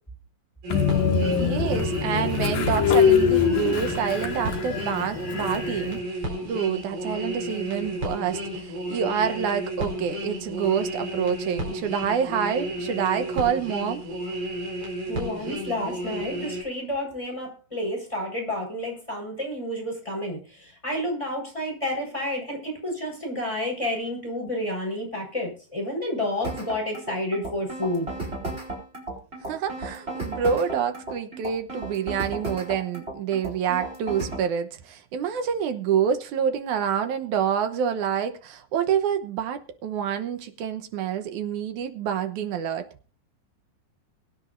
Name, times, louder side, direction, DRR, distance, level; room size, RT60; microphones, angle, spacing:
sound 1, 0.6-16.6, equal, 40° right, 5.2 m, -32 dB
Train, 0.7-6.0, left 7 dB, 80° left, 3.6 m, -23 dB
voice 1, 1.4-6.0 6.4-14.0 29.5-42.8, right 8 dB, 70° right, 2.2 m, -27 dB
voice 2, 15.1-28.1, left 1 dB, 10° left, 4.8 m, -30 dB
sound 2, 26.4-34.5, right 2 dB, 15° right, 4.4 m, -34 dB
23.0 x 9.8 x 2.6 m
omnidirectional pair, 4.1 m